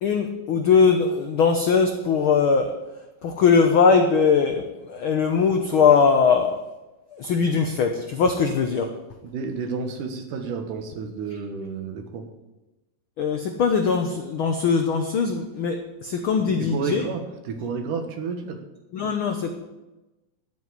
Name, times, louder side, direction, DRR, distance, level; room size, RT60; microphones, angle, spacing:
voice 1, 0.0-2.7 3.2-6.6 7.1-8.9 13.2-17.1 18.9-19.6, left 5 dB, 80° left, 5 dB, 1.1 m, -21 dB
voice 2, 9.2-12.3 16.4-18.6, right 5 dB, 80° right, 6 dB, 2.9 m, -31 dB
12.5 x 5.5 x 9.2 m, 1.0 s
omnidirectional pair, 3.6 m